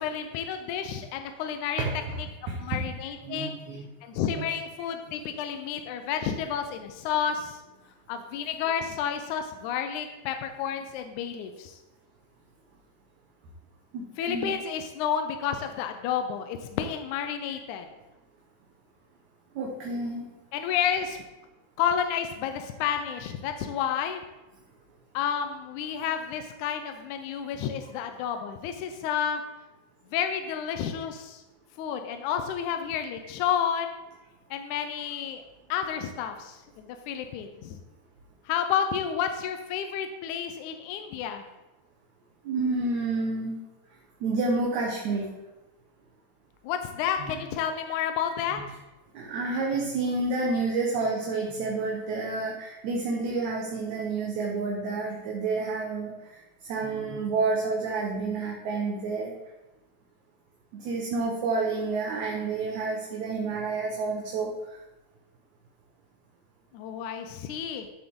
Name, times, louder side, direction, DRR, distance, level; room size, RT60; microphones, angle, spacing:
voice 1, 0.0-1.8 2.6-3.6 4.0-7.6 8.1-11.8 14.2-17.9 20.5-21.2 21.8-24.2 25.1-29.4 30.1-31.4 31.8-34.0 34.5-35.4 35.7-37.8 38.5-41.4 46.6-48.6 66.7-67.9, left 8 dB, 80° left, 7 dB, 1.9 m, -30 dB
voice 2, 1.8-2.2 2.5-2.8 3.2-3.9 4.4-4.5 13.9-14.5 19.5-20.2 23.1-23.2 42.4-43.6 44.2-45.3 47.2-47.4 48.5-48.6 49.1-59.3 60.8-64.8, right 3 dB, 65° right, -1 dB, 2.3 m, -29 dB
13.0 x 7.6 x 3.7 m, 1.1 s
omnidirectional pair, 4.1 m